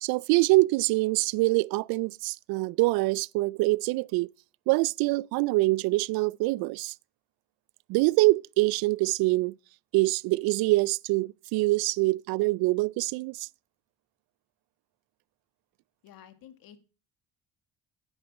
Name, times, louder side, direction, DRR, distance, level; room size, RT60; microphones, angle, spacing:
voice 1, 0.0-4.3 4.7-6.9 7.9-9.5 9.9-13.5, right 22 dB, 75° right, 0.5 m, -25 dB
voice 2, 16.0-16.8, left 10 dB, 70° left, 2.0 m, -51 dB
10.5 x 8.6 x 4.2 m
supercardioid pair, 65°, 36 cm